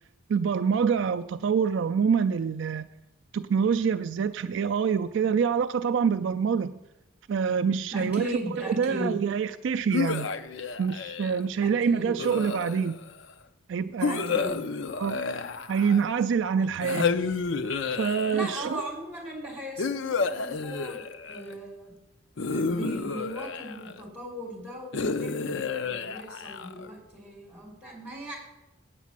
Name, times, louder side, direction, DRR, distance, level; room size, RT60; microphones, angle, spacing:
voice 1, 0.3-2.9 3.3-6.8 7.3-8.4 8.7-10.3 10.8-13.0 13.7-14.4 15.0-15.2 15.7-17.1 18.0-18.8, right 6 dB, 60° right, 0.3 m, -26 dB
voice 2, 7.9-9.2 11.6-12.1 14.0-14.7 16.6-16.9 18.3-21.0 21.3-21.9 22.4-28.4, equal, 5° right, 3.6 m, -38 dB
sound 1, 9.9-11.4 12.2-13.1 14.0-16.2 16.8-18.7 19.8-21.5 22.4-24.0 24.9-26.9, left 4 dB, 60° left, 0.6 m, -30 dB
8.4 x 8.2 x 7.3 m
head